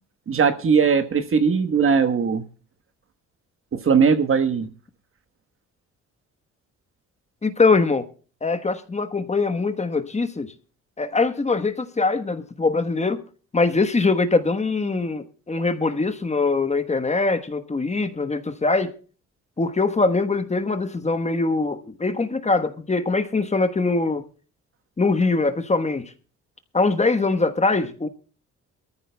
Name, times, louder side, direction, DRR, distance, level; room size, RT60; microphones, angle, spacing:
voice 1, 0.3-2.4 3.7-4.7, right 6 dB, 45° right, 1.3 m, -19 dB
voice 2, 7.4-8.0 8.4-10.5 11.0-13.2 13.5-18.9 19.6-24.2 25.0-26.1 26.7-28.1, left 3 dB, 20° left, 1.3 m, -22 dB
22.5 x 14.0 x 2.3 m
cardioid pair, 90°, 30 cm